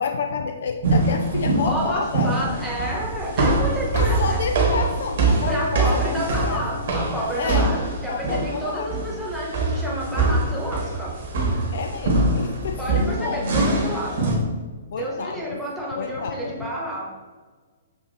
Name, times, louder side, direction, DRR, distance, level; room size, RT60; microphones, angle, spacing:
voice 1, 0.0-2.5 3.9-6.7 7.4-7.7 8.1-8.9 11.7-13.6 14.9-15.6 16.0-16.6, left 5 dB, 55° left, 4 dB, 0.3 m, -29 dB
sound 1, 0.8-14.4, right 2 dB, 50° right, 1.1 m, -23 dB
voice 2, 1.6-4.4 5.4-11.1 12.8-14.4 14.9-17.1, right 1 dB, ahead, -5 dB, 1.1 m, -30 dB
6.8 x 2.6 x 2.6 m, 1.4 s
figure-of-eight pair, 120°, 0 cm